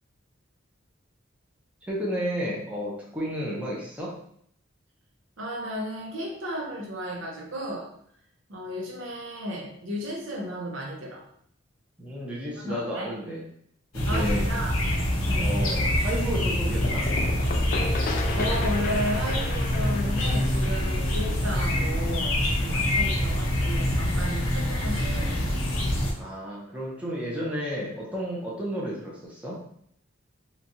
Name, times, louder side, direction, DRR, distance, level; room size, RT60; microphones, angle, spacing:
voice 1, 1.9-4.1 12.0-13.4 13.9-14.5 15.4-17.0 26.2-29.6, equal, 5° right, -6 dB, 0.6 m, -32 dB
voice 2, 5.4-7.9 8.5-11.2 12.6-13.1 14.1-14.8 15.3-15.5 18.3-25.7, equal, 70° right, -2 dB, 0.7 m, -34 dB
sound 1, 13.9-26.1, left 1 dB, 90° left, 0.8 m, -25 dB
sound 2, 16.8-22.4, left 3 dB, 45° left, 0.3 m, -35 dB
3.1 x 2.3 x 2.6 m, 0.67 s
head